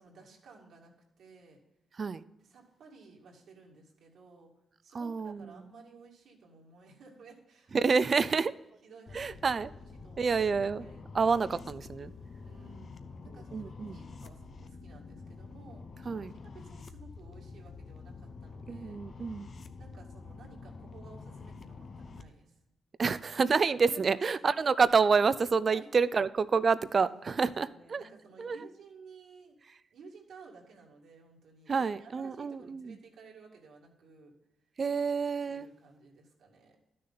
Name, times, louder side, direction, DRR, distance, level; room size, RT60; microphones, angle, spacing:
voice 1, 0.0-1.6 2.4-4.5 4.8-7.9 8.2-8.6 8.8-10.5 10.8-11.1 12.4-19.0 19.8-22.6 23.9-24.2 25.6-25.9 26.6-29.6 29.9-34.3 35.5-36.8, right 4 dB, 80° right, -1 dB, 2.2 m, -55 dB
voice 2, 4.9-5.5 7.7-8.5 9.1-9.7 10.2-10.9 11.1-12.1 13.5-14.0 16.1-16.3 18.7-19.5 23.0-28.0 28.4-28.6 31.7-33.0 34.8-35.7, right 5 dB, 45° right, 17 dB, 0.4 m, -28 dB
sound 1, 9.1-22.2, left 4 dB, 50° left, 0.7 m, -47 dB
12.0 x 6.5 x 4.0 m, 0.95 s
cardioid pair, 85°, 0 cm